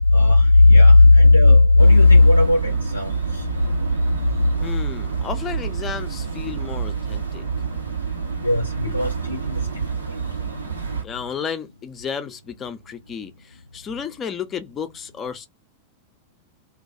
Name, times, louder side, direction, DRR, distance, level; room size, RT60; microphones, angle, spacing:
voice 1, 0.1-3.5 8.4-9.7, left 2 dB, 85° left, 0.5 m, -13 dB
sound 1, 1.8-11.0, right 6 dB, 80° right, 0.8 m, -28 dB
voice 2, 4.6-7.4 8.9-9.3 11.0-15.5, left 7 dB, 25° left, 0.5 m, -33 dB
2.2 x 2.1 x 2.6 m
figure-of-eight pair, 90°, 0 cm